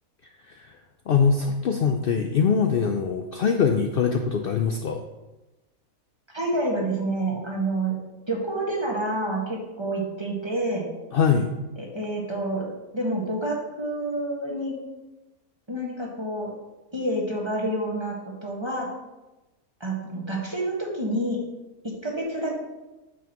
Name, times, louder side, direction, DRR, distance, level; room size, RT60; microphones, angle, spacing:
voice 1, 1.1-5.0 11.1-11.5, left 6 dB, 70° left, 4 dB, 0.5 m, -23 dB
voice 2, 6.3-7.9 8.3-10.8 11.8-12.6 12.9-14.7 15.7-16.5 16.9-18.9 19.8-21.4 21.8-22.6, right 1 dB, 20° right, -3 dB, 1.5 m, -28 dB
8.7 x 7.0 x 3.0 m, 1.0 s
omnidirectional pair, 1.6 m